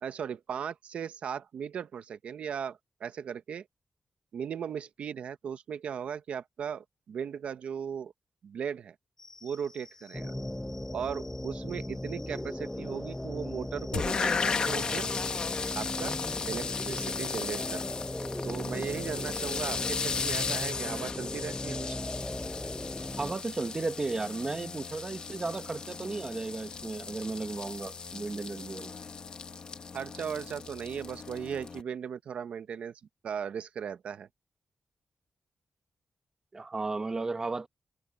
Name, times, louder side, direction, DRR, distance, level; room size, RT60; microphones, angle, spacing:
voice 1, 0.0-3.7 4.3-8.1 8.4-8.9 9.4-10.3 10.9-15.1 15.7-16.2 16.5-17.8 18.4-22.0 29.9-34.3, right 7 dB, 85° right, 1.0 m, -37 dB
sound 1, 9.2-17.4, left 3 dB, 25° left, 3.1 m, -54 dB
sound 2, 10.1-23.3, left 1 dB, 5° left, 0.6 m, -38 dB
sound 3, 13.9-31.8, left 5 dB, 45° left, 1.4 m, -36 dB
voice 2, 23.2-28.9 36.5-37.7, right 3 dB, 25° right, 1.1 m, -34 dB
wide cardioid pair, 170°, 2 cm